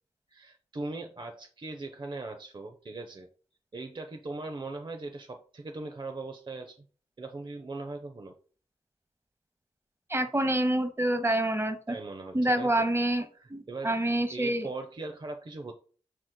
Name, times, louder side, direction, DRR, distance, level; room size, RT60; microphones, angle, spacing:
voice 1, 0.3-3.3 3.7-6.8 7.2-8.3 11.9-12.7 13.3-15.7, right 3 dB, 35° right, 4 dB, 0.6 m, -40 dB
voice 2, 10.1-11.9 12.3-14.7, right 1 dB, 20° right, 7 dB, 1.0 m, -27 dB
6.2 x 3.6 x 2.2 m, 0.41 s
supercardioid pair, 40°, 13 cm